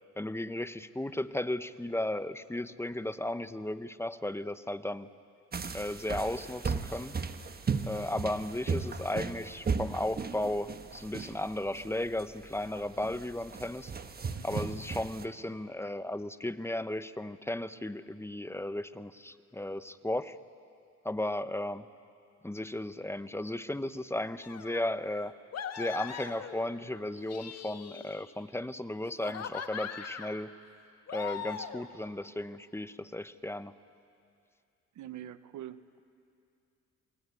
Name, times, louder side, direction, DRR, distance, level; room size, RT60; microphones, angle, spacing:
voice 1, 0.2-5.1 5.7-7.1 7.8-13.9 14.4-20.4 21.0-21.9 22.4-25.3 25.8-30.5 31.1-33.8, left 1 dB, 10° left, 13 dB, 0.8 m, -35 dB
sound 1, 5.5-15.3, right 5 dB, 30° right, 1.3 m, -36 dB
sound 2, 24.4-24.9 25.5-26.8 27.2-28.4 29.0-30.4 31.1-31.9, left 8 dB, 55° left, 1.6 m, -40 dB
voice 2, 34.9-36.0, right 11 dB, 75° right, 13 dB, 1.1 m, -44 dB
27.5 x 21.0 x 9.7 m, 2.5 s
cardioid pair, 90°, 30 cm